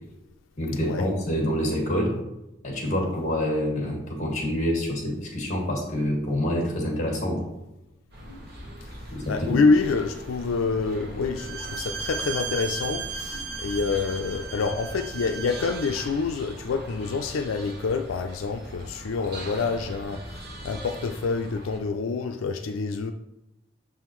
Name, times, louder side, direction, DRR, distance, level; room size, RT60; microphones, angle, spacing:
voice 1, 0.6-2.1 2.6-7.4 9.1-9.6, equal, 40° left, -1 dB, 1.8 m, -27 dB
sound 1, 8.1-21.8, equal, 55° right, 1.1 m, -41 dB
voice 2, 8.8-23.1, left 4 dB, 85° left, 6 dB, 0.4 m, -27 dB
Bowed string instrument, 11.4-16.2, right 5 dB, 85° right, 0.5 m, -35 dB
6.7 x 5.5 x 3.1 m, 0.93 s
head